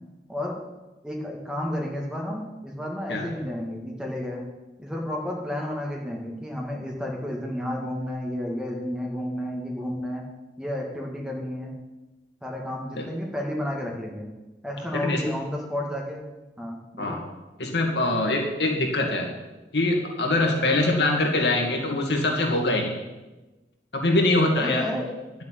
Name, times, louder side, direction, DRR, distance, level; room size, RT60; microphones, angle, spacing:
voice 1, 1.0-4.4 4.8-10.3 10.6-11.7 12.4-14.3 14.6-16.2 16.6-17.2 20.4-20.8 24.5-25.2, left 1 dB, 5° right, -1 dB, 2.2 m, -31 dB
voice 2, 17.6-19.3 19.7-23.0 23.9-24.9, left 2 dB, 65° left, 1 dB, 2.2 m, -23 dB
11.0 x 7.7 x 8.8 m, 1.1 s
head